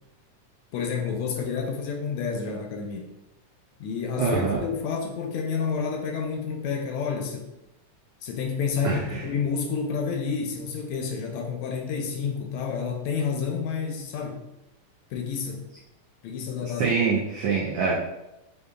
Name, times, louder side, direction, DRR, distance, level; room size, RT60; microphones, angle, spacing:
voice 1, 0.7-3.1 3.8-7.5 8.2-14.4 15.1-15.6 16.2-16.9, left 6 dB, 80° left, 3 dB, 1.6 m, -29 dB
voice 2, 4.2-4.6 8.8-9.2 16.7-17.9, right 5 dB, 90° right, -3 dB, 1.3 m, -25 dB
6.6 x 2.7 x 2.3 m, 0.90 s
omnidirectional pair, 3.4 m